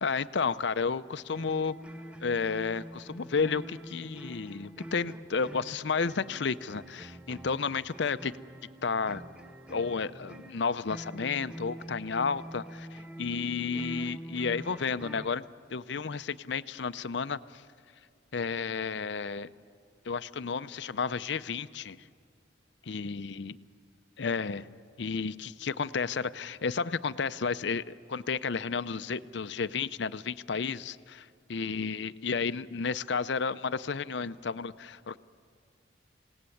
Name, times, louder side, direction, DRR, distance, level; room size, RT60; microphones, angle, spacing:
voice 1, 0.0-1.8 2.2-8.3 8.8-9.2 9.7-15.4 15.7-17.6 18.3-19.5 20.1-22.0 22.9-23.5 24.2-24.7 25.0-35.2, left 5 dB, 65° left, 14 dB, 0.6 m, -32 dB
sound 1, 1.3-15.4, right 1 dB, 5° right, 0.6 m, -45 dB
27.5 x 18.0 x 8.5 m, 2.3 s
head